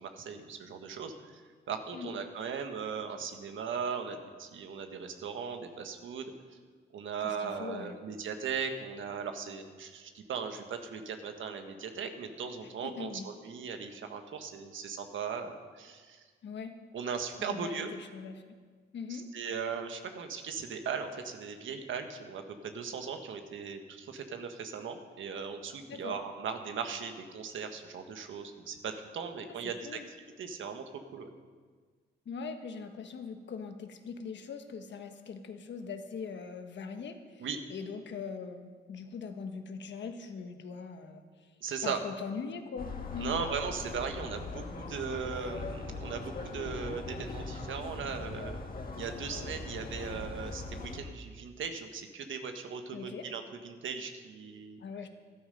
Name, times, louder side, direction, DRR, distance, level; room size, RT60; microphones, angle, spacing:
voice 1, 0.0-1.4 1.7-6.3 6.9-16.2 16.9-17.9 19.1-30.0 30.4-31.3 37.4-37.6 41.6-42.0 43.2-48.6 49.0-54.8, right 6 dB, 80° right, 6 dB, 1.5 m, -38 dB
voice 2, 7.2-8.0 12.8-13.3 16.4-16.7 17.4-18.6 18.9-19.3 25.9-26.2 29.4-29.6 29.8-30.1 32.2-41.2 41.8-43.4 52.9-53.3 54.8-55.1, left 5 dB, 65° left, 6 dB, 1.4 m, -41 dB
sound 1, 42.8-51.0, left 3 dB, 45° left, 1.8 m, -40 dB
13.5 x 12.5 x 5.3 m, 1.5 s
cardioid pair, 85°, 20 cm